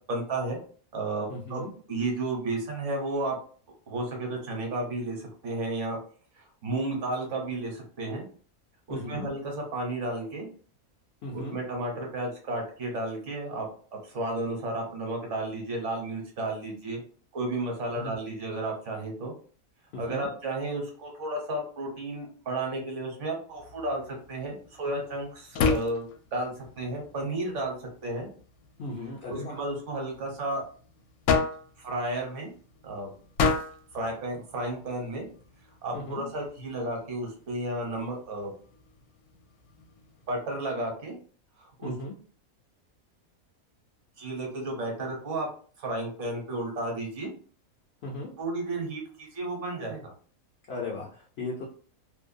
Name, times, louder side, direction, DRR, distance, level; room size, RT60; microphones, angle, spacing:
voice 1, 0.1-0.6 0.9-3.4 3.9-6.0 6.4-8.3 8.9-10.5 11.3-13.7 13.9-17.0 17.3-19.3 20.0-26.5 26.8-27.8 28.0-28.3 29.3-30.6 31.8-32.5 32.8-33.1 33.9-35.3 35.8-38.5 40.3-41.2 41.6-41.9 44.2-45.5 45.8-47.3 48.4-50.1, right 2 dB, 60° right, 1 dB, 1.1 m, -32 dB
voice 2, 1.3-1.7 8.9-9.3 11.2-11.6 17.9-18.1 19.9-20.3 28.8-29.6 35.9-36.3 41.8-42.1 48.0-48.3 50.7-51.6, left 2 dB, 65° left, -1 dB, 0.7 m, -37 dB
sound 1, 23.5-40.4, left 5 dB, 80° left, 1.0 m, -35 dB
2.6 x 2.1 x 2.5 m, 0.43 s
omnidirectional pair, 1.5 m